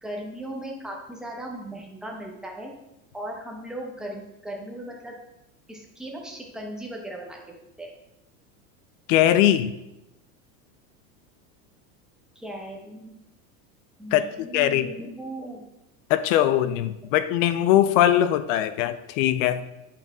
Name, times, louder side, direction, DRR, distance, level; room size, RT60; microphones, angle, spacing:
voice 1, 0.0-2.7 3.1-5.1 5.7-7.4 7.8-7.9 12.4-13.1 14.0-15.6, right 1 dB, ahead, -1 dB, 0.9 m, -37 dB
voice 2, 9.1-9.7 14.1-14.9 16.1-19.6, left 12 dB, 65° left, 12 dB, 0.6 m, -21 dB
8.8 x 5.9 x 2.4 m, 0.91 s
supercardioid pair, 140°, 41 cm